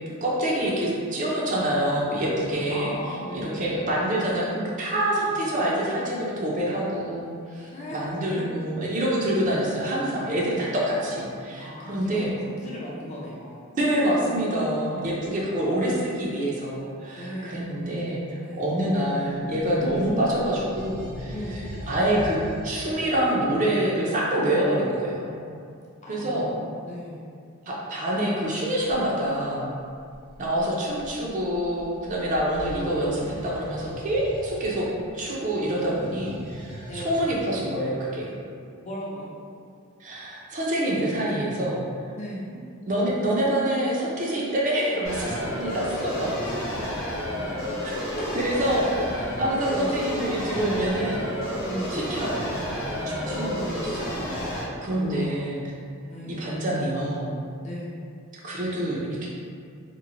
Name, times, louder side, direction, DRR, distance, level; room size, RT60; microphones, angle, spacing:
voice 1, 0.1-2.9 3.3-12.3 13.7-21.3 21.9-22.4 22.6-25.5 26.1-26.5 27.7-29.7 30.4-34.9 35.1-38.3 40.0-41.8 42.9-46.4 47.8-49.1 49.4-51.3 51.9-52.5 53.1-55.6 56.3-57.3 58.4-59.3, right 1 dB, 35° right, -5 dB, 0.4 m, -26 dB
voice 2, 2.7-3.7 5.3-5.4 7.7-8.0 11.6-13.7 14.7-15.7 17.2-17.8 18.0-18.7 19.7-20.0 21.3-21.9 26.0-27.3 32.0-32.4 36.9-37.3 38.8-39.3 42.2-42.5 47.8-48.3 48.6-48.7 49.7-50.0 51.6-52.0 52.9-53.7 54.8-55.6 56.1-56.5 57.6-57.9, equal, 30° left, -5 dB, 0.4 m, -37 dB
sound 1, 19.4-23.5 28.8-29.0 29.8-37.6, equal, 90° right, 1.4 m, -42 dB
sound 2, 45.0-54.6, equal, 75° left, 0.8 m, -31 dB
2.9 x 2.0 x 2.5 m, 2.3 s
head